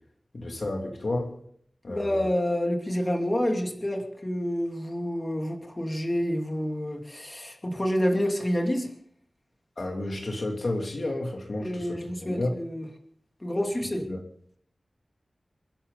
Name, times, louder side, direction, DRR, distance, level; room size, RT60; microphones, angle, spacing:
voice 1, 0.3-1.3 1.8-2.3 9.8-12.5 14.1-14.2, left 2 dB, 60° left, 1 dB, 3.1 m, -31 dB
voice 2, 1.9-8.9 11.6-12.9 13.4-14.0, equal, 25° left, 2 dB, 2.7 m, -28 dB
28.0 x 11.0 x 4.1 m, 0.63 s
wide cardioid pair, 85°, 0 cm